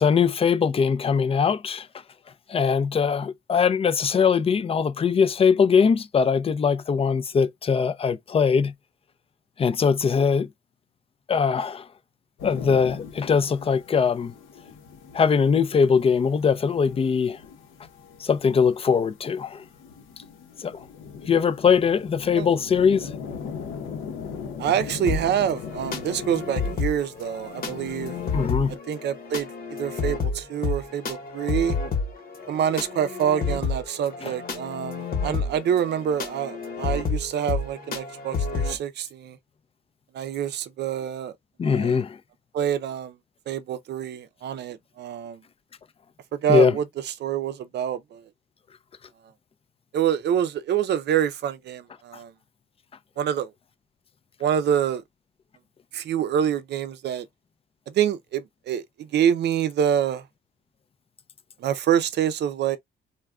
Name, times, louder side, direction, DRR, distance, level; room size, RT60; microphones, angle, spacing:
voice 1, 0.0-1.9 2.5-8.7 9.6-10.5 11.3-11.9 12.4-14.3 15.1-17.4 18.2-19.6 20.6-20.8 21.3-23.1 28.3-28.7 34.2-34.3 41.6-42.2 46.5-46.7, left 6 dB, 30° left, 0.4 m, -21 dB
sound 1, 12.4-28.8, left 6 dB, 80° left, 0.7 m, -40 dB
voice 2, 24.6-28.2 28.7-31.8 32.5-39.4 40.1-41.3 41.6-42.0 42.5-43.1 43.5-45.4 46.3-48.2 49.9-52.3 53.2-53.5 54.4-55.0 55.9-57.2 57.9-58.8 59.1-60.2 61.6-62.8, right 9 dB, 60° right, 0.5 m, -26 dB
sound 2, 25.1-38.8, left 4 dB, 45° left, 1.0 m, -30 dB
2.2 x 2.2 x 3.5 m
cardioid pair, 90°, 20 cm